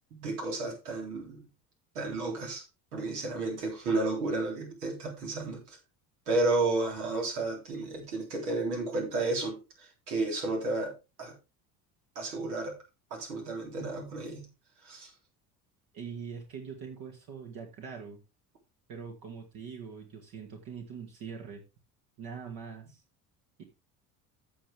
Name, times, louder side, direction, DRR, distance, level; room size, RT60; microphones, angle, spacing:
voice 1, 0.1-1.4 2.0-2.6 2.9-5.8 6.3-10.9 11.2-11.3 12.2-12.8 13.1-14.5 14.8-15.1, right 2 dB, 70° right, 1 dB, 3.7 m, -32 dB
voice 2, 15.9-18.2 18.9-21.6 22.2-23.0 23.6-23.7, right 6 dB, 50° right, 2 dB, 2.1 m, -43 dB
15.0 x 5.4 x 3.4 m, 0.26 s
figure-of-eight pair, 60°, 47 cm